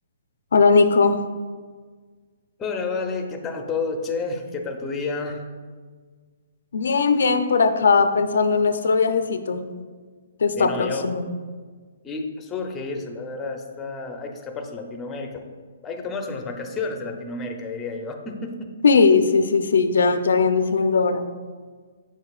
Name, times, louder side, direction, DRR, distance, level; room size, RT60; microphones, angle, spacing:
voice 1, 0.5-1.2 6.7-9.6 10.4-11.2 18.8-21.3, left 4 dB, 80° left, 9 dB, 0.5 m, -19 dB
voice 2, 2.6-5.4 10.6-11.0 12.0-15.5 15.8-18.7, left 4 dB, 15° left, 3 dB, 0.5 m, -30 dB
7.8 x 6.5 x 2.4 m, 1.5 s
hypercardioid pair, 160°, 0 cm